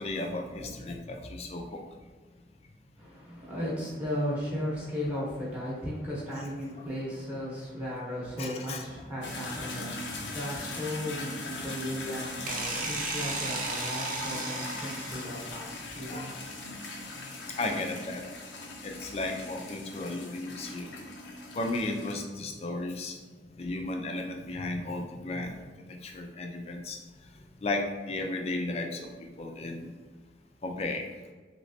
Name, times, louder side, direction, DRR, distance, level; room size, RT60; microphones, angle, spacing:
voice 1, 0.0-1.8 6.8-6.9 8.4-8.8 15.9-16.3 17.2-17.3 17.6-18.2 18.8-20.9 21.5-23.2 23.6-25.7 26.0-27.0 27.3-29.1 29.4-29.9 30.6-31.1, left 2 dB, 35° left, 3 dB, 0.4 m, -34 dB
voice 2, 3.0-16.4, equal, 5° right, -7 dB, 0.8 m, -36 dB
sound 1, 9.2-22.1, left 2 dB, 85° left, 0.6 m, -40 dB
sound 2, 12.5-15.4, right 3 dB, 45° right, 0.5 m, -34 dB
3.2 x 2.9 x 2.7 m, 1.4 s
head